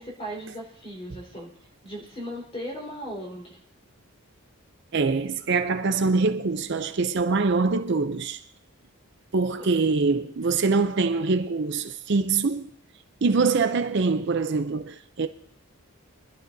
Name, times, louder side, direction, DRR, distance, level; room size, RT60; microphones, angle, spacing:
voice 1, 0.0-1.5 1.8-3.6 9.6-9.7, equal, 25° left, 4.2 m, -37 dB
voice 2, 4.9-8.4 9.3-12.7 13.2-15.3, right 4 dB, 50° right, 0.5 m, -24 dB
24.5 x 11.5 x 2.7 m
head